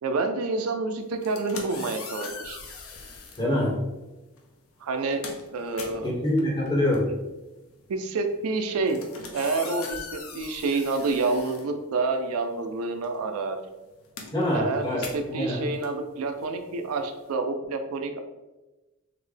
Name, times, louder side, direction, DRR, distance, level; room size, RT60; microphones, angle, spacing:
voice 1, 0.0-2.6 4.8-6.1 7.1-7.2 7.9-9.1 9.3-13.6 14.5-18.2, right 3 dB, 85° right, 6 dB, 0.4 m, -28 dB
sound 1, 1.1-3.5 4.4-4.6 4.9-12.4 12.7-17.3, left 4 dB, 70° left, 0.6 m, -42 dB
voice 2, 3.4-3.8 6.0-7.1 14.3-15.6, left 1 dB, 20° left, -5 dB, 0.9 m, -25 dB
3.8 x 2.1 x 3.3 m, 1.1 s
head